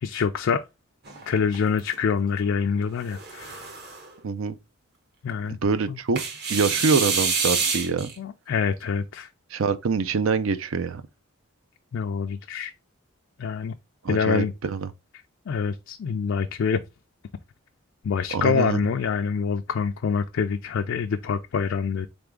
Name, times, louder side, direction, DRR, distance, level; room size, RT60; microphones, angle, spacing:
voice 1, 0.0-0.6 1.3-3.6 5.2-5.6 5.9-6.0 8.2-9.3 11.9-12.7 13.4-13.7 14.1-14.5 15.5-16.8 18.0-22.1, left 6 dB, 65° left, 0.3 m, -26 dB
sound 1, 1.1-1.9 3.0-4.1 6.2-8.1, right 5 dB, 50° right, 1.1 m, -27 dB
voice 2, 4.2-4.5 5.6-6.2 6.5-8.1 9.5-11.0 14.0-14.9 18.3-18.8, right 5 dB, 75° right, 0.5 m, -25 dB
3.9 x 3.5 x 3.5 m
head